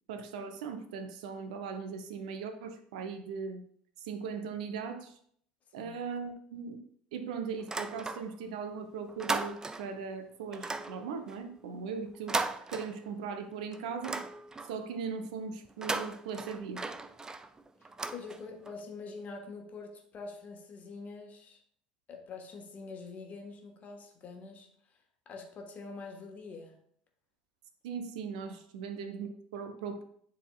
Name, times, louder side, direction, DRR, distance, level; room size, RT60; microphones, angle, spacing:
voice 1, 0.1-3.6 4.0-5.2 5.7-6.8 7.1-12.4 12.7-14.2 14.7-16.8 27.8-30.0, right 5 dB, 60° right, 7 dB, 0.7 m, -39 dB
sound 1, 7.6-8.6 8.9-10.0 10.5-13.4 13.7-14.9 15.6-18.8, right 3 dB, 15° right, 0.4 m, -37 dB
voice 2, 18.1-21.6 22.1-24.7 25.2-26.7 28.5-28.6, left 4 dB, 35° left, 3 dB, 1.3 m, -45 dB
9.8 x 4.1 x 2.3 m, 0.64 s
figure-of-eight pair, 70°, 5 cm